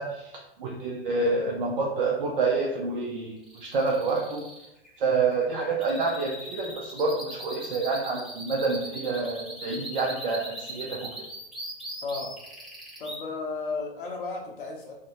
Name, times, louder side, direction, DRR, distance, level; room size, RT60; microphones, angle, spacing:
voice 1, 0.0-4.4 5.0-11.1, right 3 dB, 60° right, -1 dB, 0.5 m, -28 dB
sound 1, 3.4-13.2, right 1 dB, ahead, 0.8 m, -40 dB
voice 2, 12.0-12.3 13.0-14.9, left 3 dB, 60° left, 0 dB, 0.6 m, -34 dB
2.6 x 2.1 x 3.7 m, 0.88 s
figure-of-eight pair, 100°, 29 cm